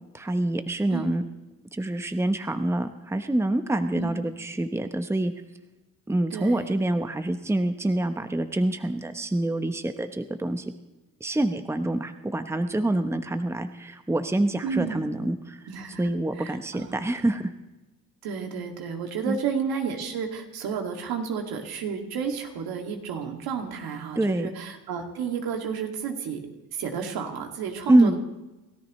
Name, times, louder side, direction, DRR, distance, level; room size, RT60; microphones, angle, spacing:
voice 1, 0.1-1.2 1.7-5.3 6.1-10.7 11.2-15.6 16.0-17.4 19.3-19.4 24.2-24.5 27.9-28.2, right 1 dB, 5° right, 8 dB, 1.0 m, -26 dB
voice 2, 6.3-6.8 14.6-15.0 15.7-16.0 16.4-16.9 18.2-26.4 26.7-28.2, right 6 dB, 75° right, 3 dB, 2.4 m, -31 dB
28.5 x 13.5 x 3.2 m, 1.1 s
cardioid pair, 85°, 37 cm